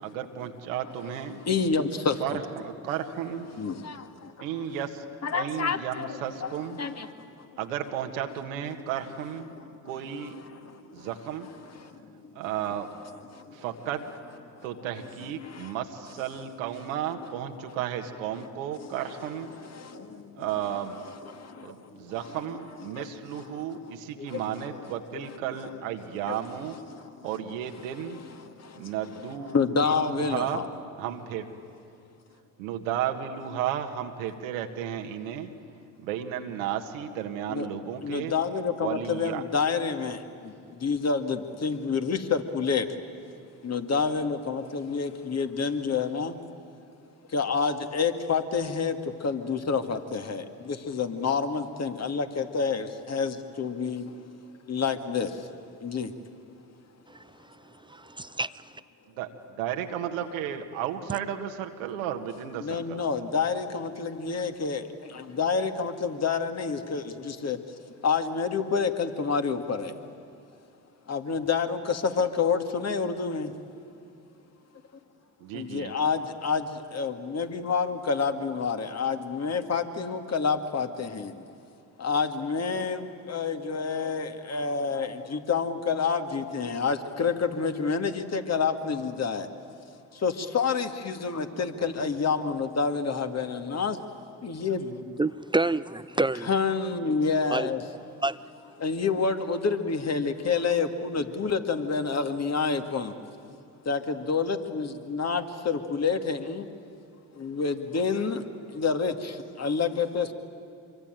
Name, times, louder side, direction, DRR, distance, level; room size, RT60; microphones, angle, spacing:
voice 1, 0.0-1.4 2.2-3.5 4.4-5.0 5.3-6.8 7.6-9.6 9.8-10.3 10.9-11.5 12.3-12.9 13.5-14.1 14.6-19.5 20.3-21.0 21.6-26.8 27.2-28.2 28.7-30.7 31.0-31.5 32.6-35.5 36.0-38.3 38.8-39.4 59.2-59.3 59.6-63.0 75.4-75.9 91.8-92.1, right 9 dB, 85° right, 5 dB, 1.6 m, -33 dB
voice 2, 1.5-2.4 3.6-4.4 5.2-6.5 6.8-7.5 10.6-11.1 11.8-12.1 13.3-13.6 14.6-14.7 15.4-15.7 18.8-18.9 19.6-20.4 21.3-22.1 22.9-23.0 23.3-23.7 24.2-24.4 24.7-24.8 26.9-27.3 28.4-28.9 29.5-30.7 37.5-37.7 38.0-42.9 43.6-46.4 47.3-54.2 54.7-55.5 55.8-56.1 62.6-67.6 68.0-70.0 71.1-73.5 75.5-81.4 82.0-89.5 90.1-94.0 94.4-95.2 96.5-97.8 98.8-103.2 103.9-106.7 107.4-108.4 108.7-110.3, left 5 dB, 40° left, 7 dB, 2.1 m, -28 dB
voice 3, 57.1-57.6 57.9-58.6 95.2-96.5 97.5-97.7 98.2-98.4, right 2 dB, 10° right, 15 dB, 0.6 m, -28 dB
25.5 x 23.5 x 9.1 m, 2.4 s
hypercardioid pair, 60°, 39 cm